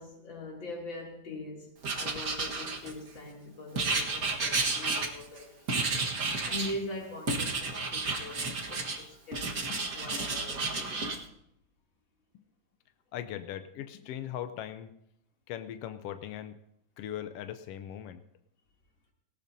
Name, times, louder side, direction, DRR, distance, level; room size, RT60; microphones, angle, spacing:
voice 1, 0.0-9.5 9.9-11.1, left 1 dB, 40° left, -1 dB, 3.4 m, -42 dB
Writing, 1.8-3.2 3.8-5.4 5.7-6.8 7.3-9.0 9.3-11.2, right 3 dB, 40° right, 1.4 m, -31 dB
voice 2, 13.1-14.9 15.5-16.6 17.0-18.2, left 11 dB, 80° left, 8 dB, 1.4 m, -39 dB
19.0 x 18.5 x 2.8 m, 0.76 s
omnidirectional pair, 3.4 m